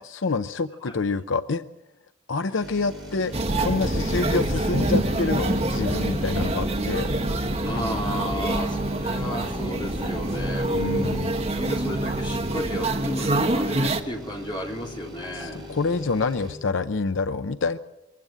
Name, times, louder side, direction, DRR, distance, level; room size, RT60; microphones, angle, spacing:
voice 1, 0.0-1.6 2.3-7.1 10.7-11.4 15.3-17.8, left 4 dB, 80° left, 11 dB, 0.7 m, -27 dB
sound 1, 2.6-16.5, left 1 dB, ahead, 5.9 m, -40 dB
sound 2, 3.3-14.0, right 1 dB, 30° right, 1.4 m, -26 dB
voice 2, 7.6-15.7, equal, 25° left, -1 dB, 3.8 m, -34 dB
23.0 x 16.0 x 7.9 m, 0.95 s
head